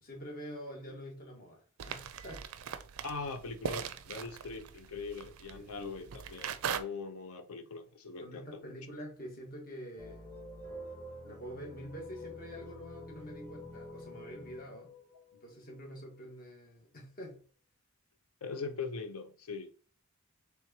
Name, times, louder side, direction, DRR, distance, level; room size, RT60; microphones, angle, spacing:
voice 1, 0.0-2.5 5.5-5.9 8.2-10.3 11.2-14.9 15.3-17.4, equal, 40° left, 1.3 m, -46 dB
sound 1, 1.8-6.8, right 7 dB, 75° right, 0.4 m, -40 dB
voice 2, 3.0-8.6 18.4-19.7, left 4 dB, 80° left, 0.7 m, -41 dB
sound 2, 10.0-16.1, left 1 dB, 10° left, 1.1 m, -48 dB
4.4 x 3.4 x 2.8 m
head